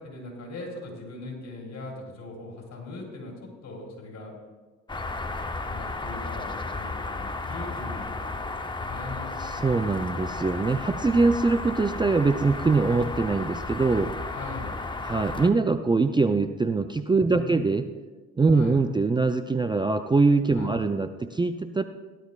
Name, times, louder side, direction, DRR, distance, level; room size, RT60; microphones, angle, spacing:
voice 1, 0.0-4.3 5.7-6.5 6.8-8.4 8.7-9.4 14.3-14.7 17.2-17.6 18.5-18.8 20.5-20.8, left 3 dB, 60° left, -1 dB, 4.2 m, -40 dB
sound 1, 4.9-15.5, left 3 dB, 15° left, 0.7 m, -33 dB
voice 2, 9.4-14.1 15.0-17.9 18.4-21.8, right 3 dB, 15° right, 8 dB, 0.4 m, -23 dB
17.0 x 11.5 x 2.4 m, 1.3 s
cardioid pair, 90°, 30 cm